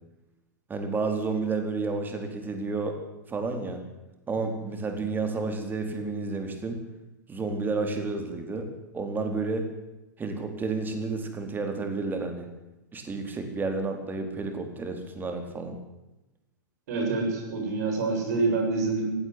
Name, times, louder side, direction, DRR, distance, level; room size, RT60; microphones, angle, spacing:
voice 1, 0.7-2.9 3.3-3.8 4.3-6.8 7.3-8.7 8.9-9.7 10.2-12.5 12.9-15.8, right 3 dB, 20° right, 5 dB, 4.3 m, -31 dB
voice 2, 16.9-19.1, right 3 dB, 55° right, 2 dB, 7.5 m, -26 dB
17.5 x 16.5 x 9.7 m, 0.96 s
figure-of-eight pair, 95°, 10 cm